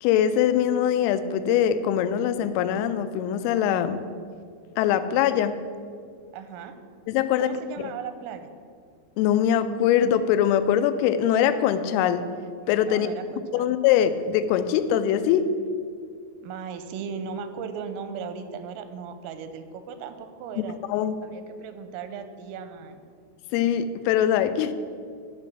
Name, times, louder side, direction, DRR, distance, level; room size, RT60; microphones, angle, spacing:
voice 1, 0.0-4.0 4.8-5.5 7.1-7.5 7.8-7.9 9.2-12.3 12.7-13.1 13.5-15.5 20.9-21.1 23.5-24.7, left 10 dB, 90° left, 11 dB, 3.2 m, -22 dB
voice 2, 6.3-6.8 7.4-8.5 12.9-13.8 16.4-20.8 21.2-23.1, right 6 dB, 90° right, 9 dB, 3.2 m, -37 dB
11.5 x 4.1 x 7.4 m, 2.1 s
omnidirectional pair, 5.8 m